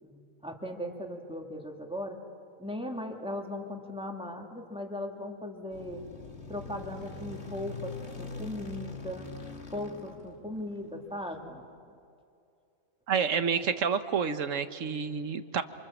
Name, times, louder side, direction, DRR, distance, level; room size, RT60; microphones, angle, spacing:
voice 1, 0.0-2.2 2.6-6.0 6.5-9.3 9.7-11.6, left 1 dB, 5° right, 2 dB, 2.4 m, -38 dB
sound 1, 5.7-11.2, left 4 dB, 55° left, 2.2 m, -43 dB
voice 2, 13.1-15.6, right 6 dB, 65° right, 10 dB, 1.5 m, -29 dB
27.5 x 27.5 x 7.4 m, 2.5 s
omnidirectional pair, 1.4 m